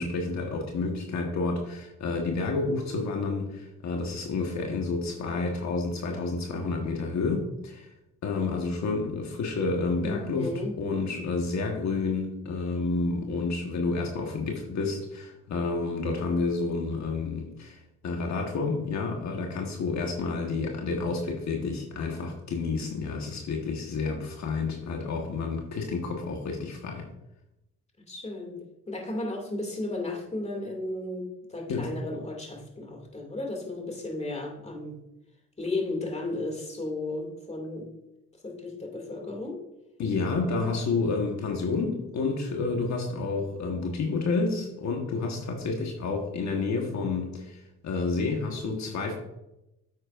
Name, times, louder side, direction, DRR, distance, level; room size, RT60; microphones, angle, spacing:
voice 1, 0.0-7.9 8.2-27.1 31.7-31.9 40.0-49.1, left 3 dB, 65° left, 2 dB, 1.4 m, -30 dB
voice 2, 10.0-10.8 28.1-35.0 35.6-37.9 38.4-39.6, left 2 dB, 20° left, 2 dB, 2.3 m, -34 dB
9.6 x 7.8 x 2.5 m, 0.89 s
cardioid pair, 90°, 30 cm